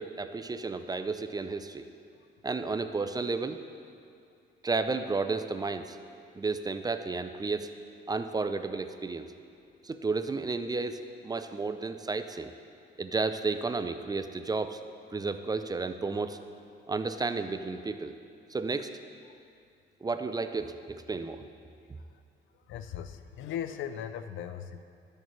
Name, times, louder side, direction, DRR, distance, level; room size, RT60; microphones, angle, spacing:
voice 1, 0.0-1.9 2.4-3.6 4.6-6.0 6.4-7.7 8.1-9.3 9.8-12.5 13.0-14.8 15.1-16.4 16.9-18.1 18.5-18.9 20.0-21.4, right 3 dB, 20° right, 9 dB, 0.4 m, -32 dB
voice 2, 22.7-24.8, left 9 dB, 75° left, 10 dB, 0.5 m, -38 dB
12.0 x 6.5 x 3.1 m, 2.4 s
cardioid pair, 90°, 20 cm